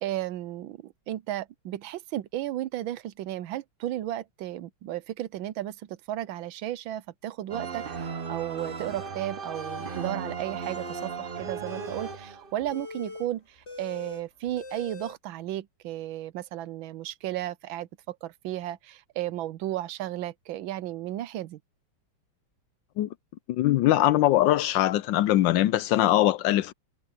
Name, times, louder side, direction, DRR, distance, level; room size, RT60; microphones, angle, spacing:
voice 1, 0.0-21.6, right 13 dB, 80° right, 1.4 m, -34 dB
sound 1, 7.5-12.7, right 5 dB, 40° right, 0.7 m, -36 dB
sound 2, 7.6-8.1 8.6-9.1 9.4-10.1 10.5-15.1, left 3 dB, 30° left, 7.4 m, -44 dB
voice 2, 23.5-26.7, left 14 dB, 75° left, 1.1 m, -22 dB
omnidirectional pair, 2.2 m